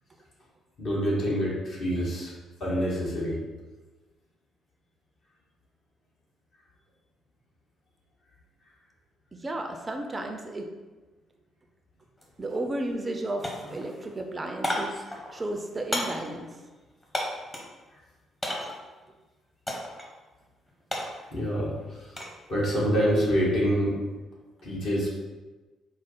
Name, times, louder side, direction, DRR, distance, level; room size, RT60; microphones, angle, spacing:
voice 1, 0.8-2.3 2.6-3.4 21.3-22.0 22.5-24.0 24.6-25.1, equal, 55° left, -6 dB, 1.3 m, -26 dB
voice 2, 9.3-10.7 12.4-15.1 15.3-16.6, right 1 dB, 25° right, 4 dB, 0.4 m, -33 dB
sound 1, 12.2-12.3 12.7-13.2 13.4-17.8 18.4-18.9 19.7-20.1 20.4-22.4 22.7-23.2, left 1 dB, 20° left, 1.0 m, -34 dB
4.7 x 2.0 x 4.1 m, 1.2 s
figure-of-eight pair, 45°, 0 cm